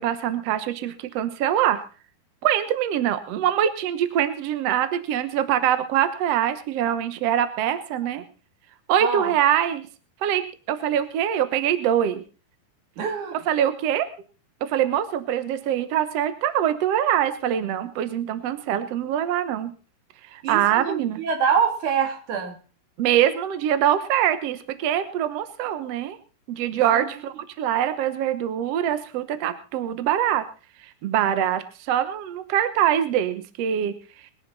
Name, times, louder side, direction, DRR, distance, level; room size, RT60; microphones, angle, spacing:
voice 1, 0.0-1.8 2.4-8.2 8.9-9.8 10.2-10.4 10.7-12.2 13.5-14.1 14.6-19.7 20.2-21.2 23.0-26.2 26.5-30.4 31.0-34.3, right 10 dB, 75° right, 11 dB, 1.5 m, -24 dB
voice 2, 9.0-9.3 13.0-13.4 20.4-22.6 26.9-27.1, right 7 dB, 55° right, 5 dB, 3.3 m, -25 dB
21.0 x 11.0 x 4.1 m, 0.35 s
omnidirectional pair, 4.3 m